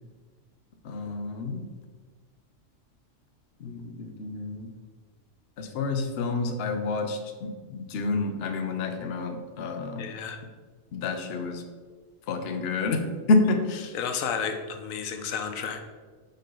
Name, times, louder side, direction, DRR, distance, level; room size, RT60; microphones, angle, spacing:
voice 1, 0.8-1.6 3.6-4.7 5.6-10.1 10.9-11.6 12.3-13.0 13.3-14.0, left 3 dB, 55° left, 5 dB, 0.8 m, -28 dB
voice 2, 10.0-10.4 13.9-15.8, left 6 dB, 85° left, 6 dB, 1.1 m, -32 dB
5.6 x 5.6 x 3.8 m, 1.5 s
omnidirectional pair, 1.4 m